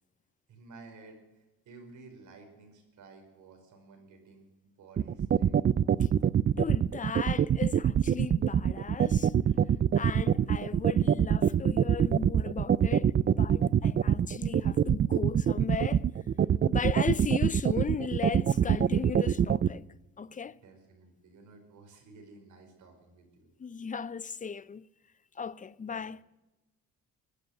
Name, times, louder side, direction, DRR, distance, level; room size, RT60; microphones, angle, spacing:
voice 1, 0.5-5.7 20.4-23.5 25.9-26.0, right 3 dB, 75° right, 5.1 m, -54 dB
sound 1, 5.0-19.7, right 9 dB, 35° right, 0.5 m, -24 dB
voice 2, 6.6-9.3 10.0-16.1 16.7-19.8 20.2-20.6 23.6-24.9 25.4-26.2, left 6 dB, 25° left, 0.6 m, -36 dB
18.0 x 10.5 x 7.8 m
cardioid pair, 90°, 30 cm